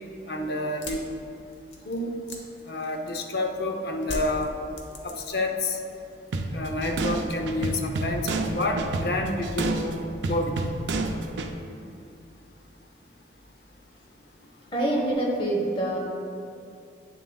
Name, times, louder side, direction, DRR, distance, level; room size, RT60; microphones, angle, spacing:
voice 1, 0.3-1.0 1.9-2.1 2.7-4.5 5.0-5.8 6.5-10.0 10.3-10.5, left 2 dB, 60° left, 3 dB, 0.7 m, -28 dB
sound 1, 0.7-3.4 4.0-5.6 5.9-6.4, left 1 dB, 90° left, 1.0 m, -39 dB
sound 2, 6.3-11.5, right 2 dB, 80° right, 0.5 m, -30 dB
voice 2, 14.7-16.0, right 1 dB, 30° left, -2 dB, 1.1 m, -25 dB
9.4 x 6.8 x 2.3 m, 2.5 s
head